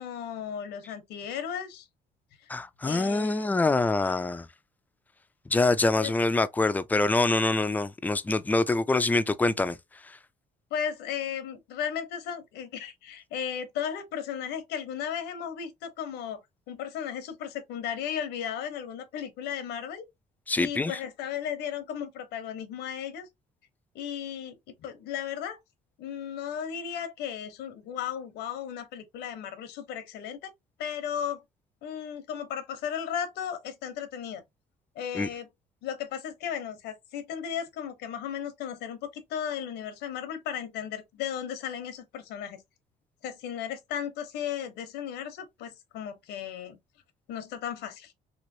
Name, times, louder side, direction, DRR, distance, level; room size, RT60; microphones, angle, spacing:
voice 1, 0.0-1.9 2.4-2.5 2.8-3.5 5.9-6.1 10.7-16.4 16.7-20.0 20.6-23.3 23.9-25.6 26.0-30.5 30.8-31.4 31.8-34.4 34.9-35.5 35.8-42.6 43.2-46.8 47.3-48.1, left 8 dB, 85° left, 0.8 m, -35 dB
voice 2, 2.5-4.5 5.5-9.8 10.1-10.2 20.5-21.0 35.1-35.3, left 2 dB, 10° left, 0.3 m, -25 dB
3.0 x 2.9 x 2.6 m
cardioid pair, 110°, 17 cm